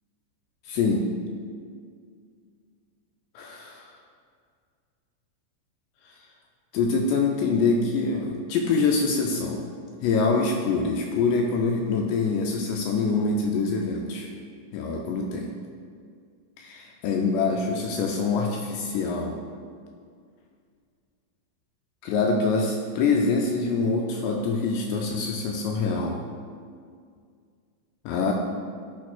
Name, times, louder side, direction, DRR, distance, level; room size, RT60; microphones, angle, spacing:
voice 1, 0.6-1.1 3.4-3.9 6.1-6.2 6.7-9.7 10.0-14.3 14.7-15.5 16.6-19.4 22.0-26.2 28.1-28.3, left 4 dB, 85° left, 1 dB, 2.5 m, -25 dB
12.0 x 6.2 x 2.3 m, 2.1 s
omnidirectional pair, 5.4 m